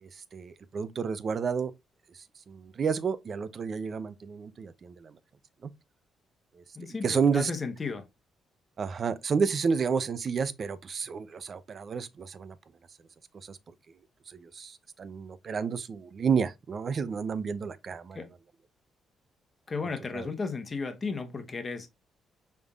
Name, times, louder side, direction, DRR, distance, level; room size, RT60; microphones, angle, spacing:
voice 1, 0.0-1.7 2.1-5.2 5.6-5.7 6.6-6.7 7.0-7.5 8.8-12.5 13.4-13.6 14.3-18.2 20.1-20.3, right 6 dB, 45° right, 0.5 m, -31 dB
voice 2, 6.7-8.1 18.1-18.3 19.7-21.9, left 4 dB, 35° left, 1.1 m, -34 dB
5.2 x 3.6 x 2.4 m
cardioid pair, 90°, 0 cm